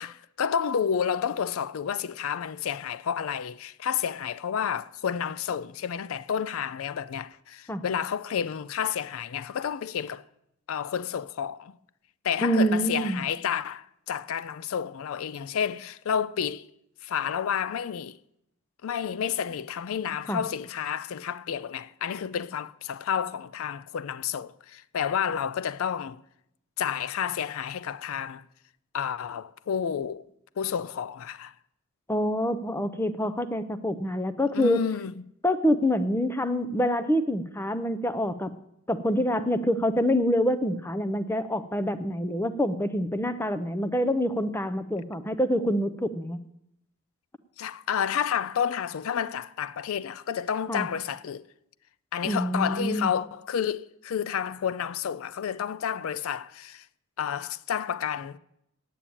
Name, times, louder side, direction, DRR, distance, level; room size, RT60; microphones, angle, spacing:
voice 1, 0.0-10.2 10.7-11.8 12.2-16.7 17.0-18.2 18.8-26.2 26.8-28.4 28.9-30.3 30.6-31.5 34.5-35.1 47.6-51.4 52.1-56.9 57.2-58.4, left 8 dB, 75° left, 0.4 m, -30 dB
voice 2, 12.4-13.2 20.3-20.4 32.1-34.8 35.4-38.5 38.9-46.4 50.7-50.9 52.2-53.1, equal, 10° left, 0.5 m, -26 dB
9.0 x 8.4 x 8.6 m
head